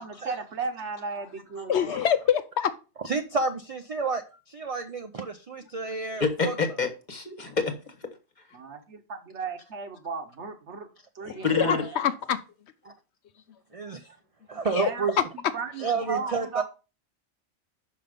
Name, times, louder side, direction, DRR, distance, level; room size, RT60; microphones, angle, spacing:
voice 1, 0.0-1.8 8.5-10.9 11.1-12.0 14.8-16.6, right 5 dB, 70° right, 1.3 m, -35 dB
voice 2, 1.7-2.7 7.4-7.5 11.2-12.4 14.7-14.9, left 8 dB, 70° left, 0.9 m, -25 dB
voice 3, 3.0-6.5 12.8-12.9 13.7-14.1 14.5-15.2 15.8-16.6, right 4 dB, 50° right, 0.4 m, -30 dB
voice 4, 6.2-7.9 11.4-11.8, left 4 dB, 40° left, 1.2 m, -27 dB
5.7 x 5.6 x 5.1 m
omnidirectional pair, 1.2 m